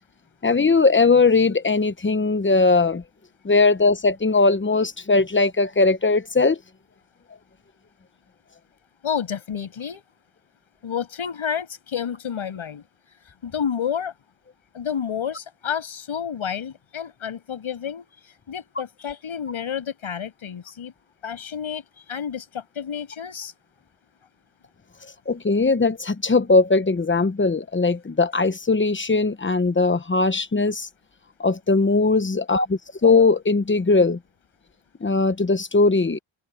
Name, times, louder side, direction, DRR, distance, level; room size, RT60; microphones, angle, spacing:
voice 1, 0.4-3.0 3.4-6.6 25.3-30.9 31.4-34.2 35.0-36.2, left 3 dB, 25° left, 1.0 m, -19 dB
voice 2, 9.0-10.0 10.8-12.8 13.4-14.1 14.7-20.9 21.2-23.5, left 8 dB, 85° left, 7.7 m, -30 dB
open air
wide cardioid pair, 130°, 47 cm